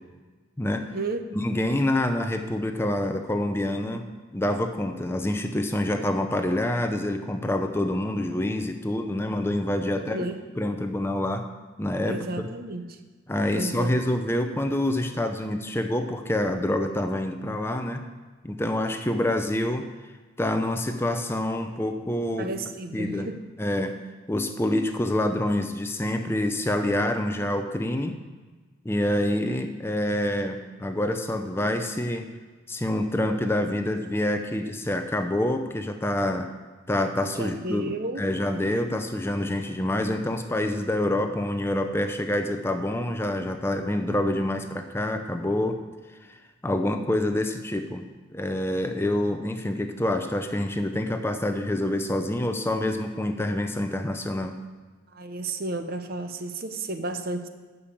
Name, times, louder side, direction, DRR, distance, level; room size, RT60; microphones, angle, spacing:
voice 1, 0.6-0.9 1.3-10.3 10.6-11.5 11.8-12.5 13.3-18.1 18.4-19.9 20.4-22.5 22.9-23.3 23.6-24.0 24.3-28.2 28.8-32.3 32.7-36.5 36.9-45.8 46.3-48.0 48.3-54.6, left 1 dB, 10° left, 6 dB, 0.5 m, -27 dB
voice 2, 10.0-10.4 12.1-13.0 13.5-14.0 22.4-23.4 37.4-38.2 55.1-57.5, right 2 dB, 45° right, 8 dB, 0.7 m, -32 dB
11.5 x 5.4 x 7.0 m, 1.3 s
head